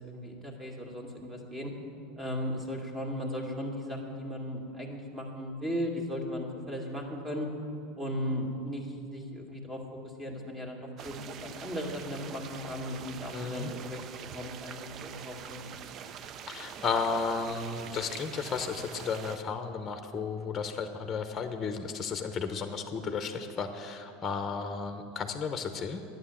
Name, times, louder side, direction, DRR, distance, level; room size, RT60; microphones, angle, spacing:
voice 1, 0.0-1.7 2.2-7.5 8.0-9.8 10.2-14.0 14.3-15.7, equal, 20° right, 0 dB, 2.4 m, -36 dB
sound 1, 11.0-19.4, right 8 dB, 40° right, 0.6 m, -44 dB
voice 2, 13.3-13.7 16.5-26.0, left 5 dB, 25° left, 7 dB, 0.9 m, -33 dB
11.0 x 9.3 x 7.3 m, 2.6 s
hypercardioid pair, 100°, 0 cm